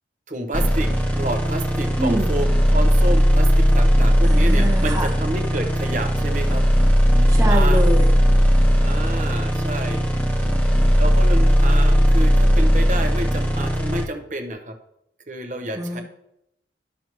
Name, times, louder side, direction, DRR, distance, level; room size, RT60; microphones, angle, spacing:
voice 1, 0.3-6.6 7.1-7.8 8.8-10.0 11.0-14.7 15.3-16.0, right 1 dB, 45° right, 5 dB, 0.9 m, -30 dB
sound 1, 0.5-14.0, equal, 10° left, 0.9 m, -17 dB
voice 2, 2.0-2.4 4.2-5.1 7.3-8.1 15.7-16.0, right 1 dB, 20° right, 2 dB, 1.2 m, -25 dB
12.5 x 5.9 x 3.0 m, 0.80 s
head